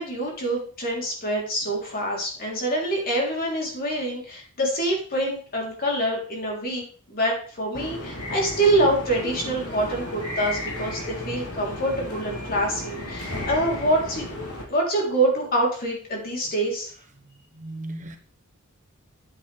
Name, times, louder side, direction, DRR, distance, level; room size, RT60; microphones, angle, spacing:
voice 1, 0.0-6.8 7.1-14.2 14.7-16.9, right 1 dB, 45° left, 3.6 m, -25 dB
sound 1, 7.7-14.6, left 1 dB, 90° left, 3.0 m, -34 dB
voice 2, 17.2-18.2, right 1 dB, 35° right, 1.3 m, -37 dB
9.7 x 9.2 x 3.5 m
head